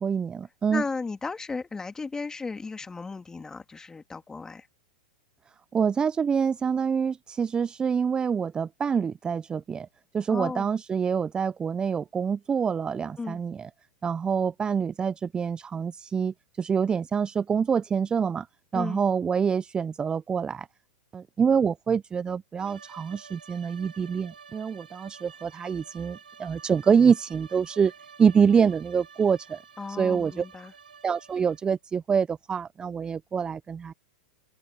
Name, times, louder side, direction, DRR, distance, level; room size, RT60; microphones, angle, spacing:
voice 1, 0.0-0.8 5.7-9.9 10.1-13.7 14.0-18.5 18.7-20.7 21.1-27.9 28.2-29.6 29.9-30.4 31.0-33.9, right 6 dB, 20° right, 0.6 m, -26 dB
voice 2, 0.7-4.7 10.3-10.7 13.2-13.4 18.7-19.0 29.8-30.7, left 4 dB, 15° left, 2.5 m, -35 dB
sound 1, 22.6-31.8, right 6 dB, 80° right, 5.9 m, -50 dB
open air
hypercardioid pair, 100°, 5 cm